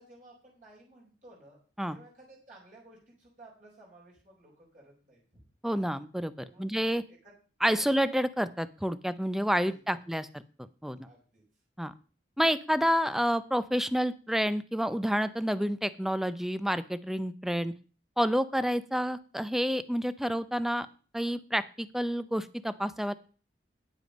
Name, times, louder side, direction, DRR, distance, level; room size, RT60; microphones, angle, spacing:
voice 1, 0.0-1.6 1.9-5.4 6.4-7.3 7.8-8.0 9.4-10.0 11.0-11.4, right 2 dB, 45° right, -4 dB, 4.5 m, -56 dB
voice 2, 5.6-6.3 6.6-7.0 7.6-10.3 10.8-11.1 11.8-11.9 12.4-17.7 18.2-20.9 21.1-23.1, equal, ahead, 15 dB, 0.4 m, -29 dB
9.4 x 8.0 x 5.2 m, 0.38 s
head